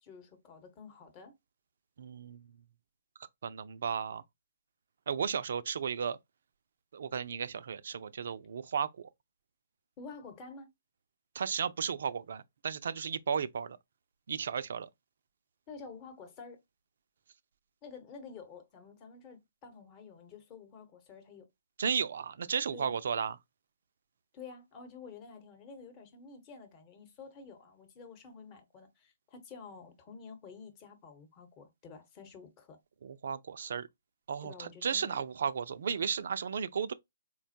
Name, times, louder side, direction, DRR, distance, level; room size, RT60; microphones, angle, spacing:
voice 1, 0.0-1.4 10.0-10.7 15.7-16.6 17.8-21.5 22.7-22.9 24.3-32.8 34.4-35.2, left 5 dB, 30° left, 1.0 m, -50 dB
voice 2, 2.0-2.5 3.4-4.2 5.1-6.2 6.9-9.1 11.3-13.8 14.3-14.9 21.8-23.4 33.0-33.9 34.3-36.9, right 7 dB, 65° right, 0.4 m, -34 dB
4.2 x 2.2 x 2.7 m
hypercardioid pair, 135°, 0 cm